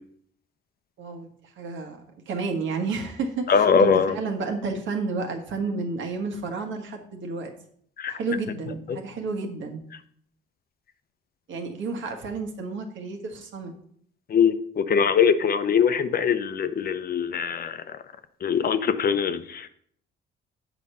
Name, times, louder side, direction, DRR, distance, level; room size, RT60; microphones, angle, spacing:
voice 1, 1.0-7.5 8.1-9.8 11.5-13.7, right 4 dB, 75° right, 1.5 m, -31 dB
voice 2, 3.5-4.1 8.0-8.1 8.9-9.0 14.3-17.8 18.4-19.7, left 6 dB, 50° left, 0.7 m, -22 dB
7.6 x 5.1 x 5.5 m
cardioid pair, 90°, 20 cm